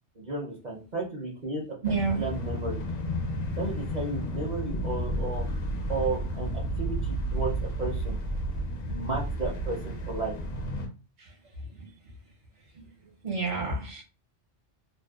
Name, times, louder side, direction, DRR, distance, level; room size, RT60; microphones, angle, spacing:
voice 1, 0.2-1.6 2.2-2.9 3.6-5.5 5.9-6.5 6.8-7.5 7.8-8.2 8.9-10.3, right 3 dB, 45° right, -3 dB, 0.6 m, -33 dB
sound 1, 1.8-10.9, equal, 60° left, 0.8 m, -32 dB
voice 2, 1.8-2.2 11.2-11.3 11.8-11.9 13.2-14.0, right 4 dB, 65° right, 0 dB, 1.1 m, -29 dB
2.5 x 2.1 x 2.3 m, 0.33 s
omnidirectional pair, 1.2 m